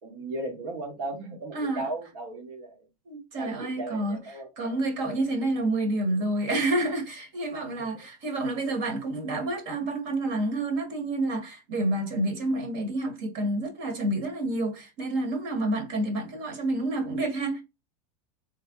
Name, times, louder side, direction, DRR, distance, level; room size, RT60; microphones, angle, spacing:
voice 1, 0.0-2.9 3.3-4.8, right 2 dB, 75° right, 1.6 m, -36 dB
voice 2, 1.5-1.9 3.0-4.2 4.6-17.6, right 2 dB, 55° right, 1.4 m, -29 dB
3.3 x 2.1 x 3.6 m
supercardioid pair, 140°, 20 cm